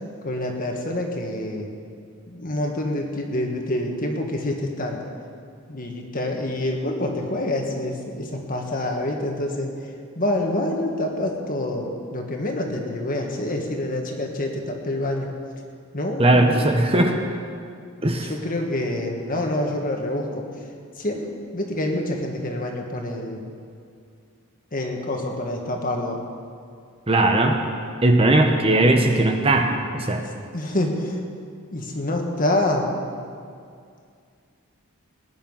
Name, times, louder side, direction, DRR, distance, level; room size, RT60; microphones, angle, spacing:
voice 1, 0.2-1.7 2.3-5.0 5.7-15.3 15.9-16.8 18.2-20.5 21.0-23.5 24.7-26.2 30.5-31.2 31.7-33.0, left 1 dB, 40° left, 2 dB, 1.8 m, -27 dB
voice 2, 16.2-17.1 18.0-18.3 27.1-27.6 28.0-30.2, right 2 dB, 25° right, 3 dB, 1.1 m, -18 dB
19.5 x 10.0 x 5.7 m, 2.3 s
head